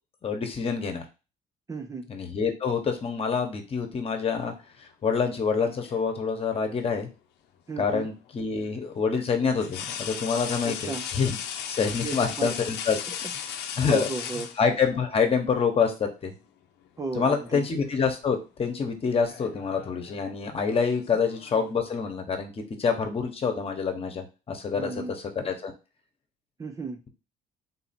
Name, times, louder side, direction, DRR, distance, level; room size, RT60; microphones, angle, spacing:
voice 1, 0.2-1.0 2.1-4.5 4.8-7.1 7.8-11.4 11.7-13.0 13.4-14.0 14.6-16.3 17.1-25.7, left 5 dB, 35° left, 5 dB, 1.1 m, -27 dB
voice 2, 1.7-2.1 7.7-8.1 10.6-11.1 12.0-12.5 13.9-14.5 17.0-17.6 24.7-25.1 26.6-27.0, right 3 dB, 20° right, 5 dB, 0.5 m, -34 dB
sound 1, 5.3-6.2 7.9-8.1 9.6-15.1 16.3-16.5 16.9-17.6 17.9-18.3 19.1-21.7, left 8 dB, 80° left, 0.7 m, -37 dB
4.1 x 2.7 x 4.2 m, 0.30 s
cardioid pair, 110°, 17 cm